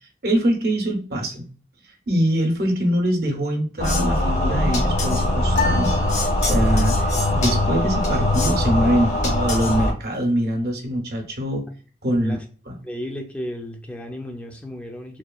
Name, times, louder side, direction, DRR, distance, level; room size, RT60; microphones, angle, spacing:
voice 1, 0.2-1.5 2.1-11.7 12.0-12.4 12.7-12.8, equal, 60° right, 0.7 m, -23 dB
sound 1, 3.8-9.9, left 1 dB, 40° left, 0.7 m, -21 dB
sound 2, 5.5-7.0, left 4 dB, 85° left, 0.6 m, -29 dB
voice 2, 12.8-15.2, equal, 5° left, 0.4 m, -34 dB
2.8 x 2.3 x 2.3 m
head